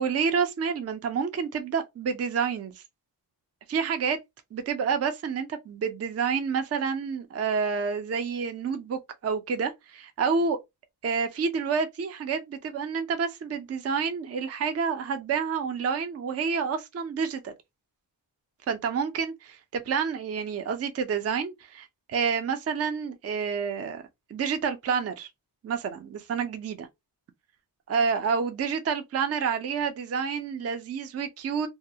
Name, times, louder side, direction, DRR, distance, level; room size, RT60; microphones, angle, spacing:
voice 1, 0.0-2.7 3.7-4.2 4.5-10.6 11.0-17.5 18.7-24.0 24.3-25.3 25.6-26.9 27.9-31.7, right 6 dB, 35° right, 0.4 m, -29 dB
2.3 x 2.0 x 2.6 m
wide cardioid pair, 135°, 44 cm